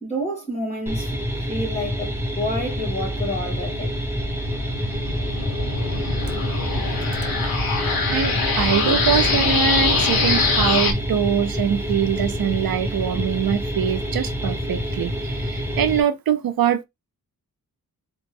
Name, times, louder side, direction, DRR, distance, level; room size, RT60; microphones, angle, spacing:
voice 1, 0.0-4.0, equal, 20° left, 2.5 m, -29 dB
sound 1, 0.9-16.0, equal, 5° right, 1.0 m, -27 dB
sound 2, 3.6-10.9, left 3 dB, 80° left, 1.4 m, -23 dB
voice 2, 8.1-16.8, right 8 dB, 80° right, 0.6 m, -23 dB
4.2 x 3.1 x 3.4 m
wide cardioid pair, 145°, 35 cm